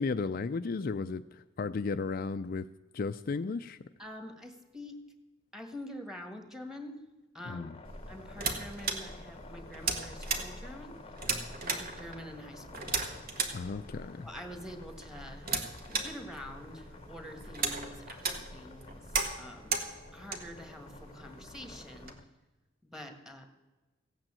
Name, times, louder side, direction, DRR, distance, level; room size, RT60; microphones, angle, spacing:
voice 1, 0.0-2.7 2.9-3.8 7.5-7.8 13.5-14.3, left 4 dB, 50° left, 10 dB, 0.4 m, -34 dB
voice 2, 4.0-4.9 5.5-7.0 7.3-7.6 8.1-11.0 11.6-12.9 14.2-15.6 15.9-19.0 19.4-19.8 20.1-22.1 22.8-23.5, left 1 dB, 5° right, 6 dB, 1.6 m, -46 dB
sound 1, 7.5-22.3, left 3 dB, 30° left, 0.8 m, -52 dB
sound 2, 7.8-22.1, right 4 dB, 50° right, 1.7 m, -37 dB
15.5 x 9.0 x 7.5 m, 1.1 s
head